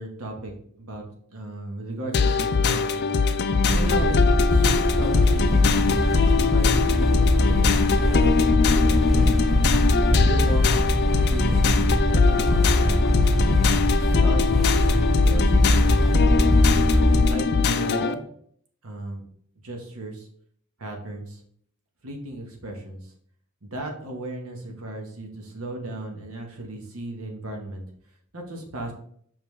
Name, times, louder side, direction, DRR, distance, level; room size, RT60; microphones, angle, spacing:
voice 1, 0.0-4.2 4.5-9.7 10.0-13.0 13.9-16.6 17.2-18.2 18.8-19.2 19.6-20.3 20.8-21.4 22.0-23.1 23.6-27.8 28.3-28.9, right 1 dB, 70° right, 2 dB, 1.4 m, -35 dB
sound 1, 2.1-18.1, left 5 dB, 50° left, 0.4 m, -22 dB
sound 2, 3.7-17.3, equal, ahead, 0.7 m, -22 dB
5.6 x 5.4 x 3.3 m, 0.64 s
head